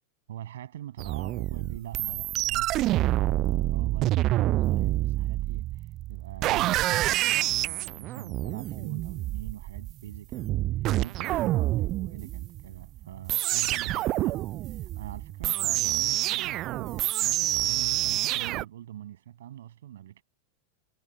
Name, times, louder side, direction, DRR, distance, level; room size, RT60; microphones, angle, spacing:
voice 1, 0.3-5.8 6.1-10.6 11.0-20.2, right 12 dB, 60° right, 7.0 m, -43 dB
sound 1, 1.0-18.6, right 16 dB, 35° right, 0.3 m, -27 dB
figure-of-eight pair, 90°, 0 cm